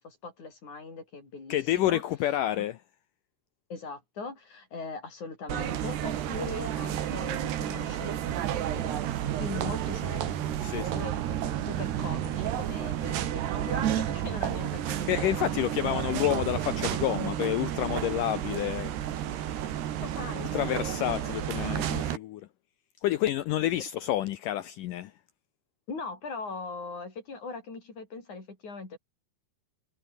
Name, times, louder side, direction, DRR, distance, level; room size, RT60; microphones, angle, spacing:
voice 1, 0.0-2.0 2.5-2.7 3.7-8.2 8.7-10.4 10.8-15.6 20.0-21.9 25.9-29.0, left 4 dB, 45° left, 8.1 m, -41 dB
voice 2, 1.5-2.8 10.6-10.9 15.1-18.9 20.4-22.5 23.0-25.1, left 13 dB, 75° left, 2.0 m, -29 dB
sound 1, 5.5-22.2, right 11 dB, 90° right, 4.2 m, -32 dB
sound 2, 8.3-17.1, right 12 dB, 65° right, 2.4 m, -36 dB
omnidirectional pair, 4.6 m